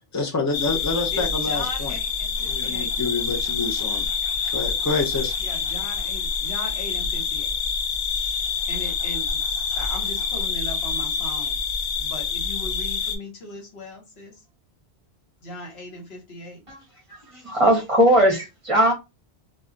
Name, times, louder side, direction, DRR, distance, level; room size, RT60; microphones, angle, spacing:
voice 1, 0.1-1.9 2.5-4.1 4.5-5.3, left 3 dB, 30° left, 0.3 m, -27 dB
sound 1, 0.5-13.2, left 6 dB, 85° left, 0.9 m, -26 dB
voice 2, 1.1-2.9 5.4-7.6 8.3-9.4 9.8-11.6 12.0-14.4 15.4-16.7, left 1 dB, 70° left, 1.3 m, -38 dB
voice 3, 17.1-18.9, equal, 35° right, 0.7 m, -19 dB
2.3 x 2.2 x 3.7 m
omnidirectional pair, 1.1 m